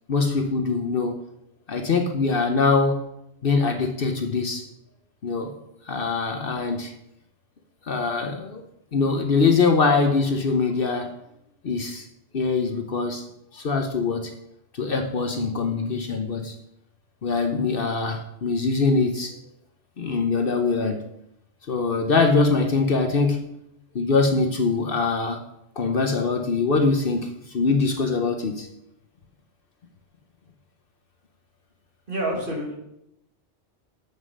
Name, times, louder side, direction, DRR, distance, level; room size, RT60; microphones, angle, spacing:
voice 1, 0.1-1.2 1.7-3.0 3.4-4.6 5.2-5.5 5.9-6.9 7.9-8.6 8.9-11.1 11.6-12.1 12.3-13.2 13.5-14.3 14.7-16.5 17.2-19.3 20.0-21.0 21.7-23.4 23.9-25.4 25.8-28.7, left 4 dB, 55° left, 4 dB, 1.0 m, -23 dB
voice 2, 32.1-32.7, right 1 dB, 45° right, -2 dB, 2.3 m, -27 dB
7.4 x 6.7 x 5.3 m, 0.81 s
omnidirectional pair, 1.2 m